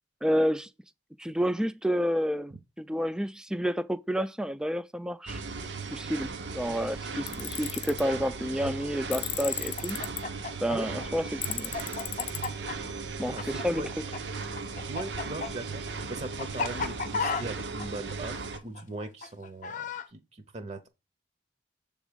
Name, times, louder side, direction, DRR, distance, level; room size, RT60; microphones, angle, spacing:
voice 1, 0.2-0.7 1.2-5.4 5.9-10.0 10.6-11.7 13.2-13.8, equal, 5° right, 0.3 m, -30 dB
sound 1, 5.3-18.6, right 4 dB, 80° right, 0.9 m, -37 dB
Tools, 7.3-8.0 9.1-10.2 11.4-12.5, left 14 dB, 90° left, 0.6 m, -35 dB
Chicken rooster, 9.7-14.2 14.4-20.1, left 5 dB, 45° left, 0.7 m, -34 dB
voice 2, 13.2-13.9 14.9-20.9, right 2 dB, 40° right, 0.7 m, -40 dB
7.1 x 3.6 x 5.0 m
head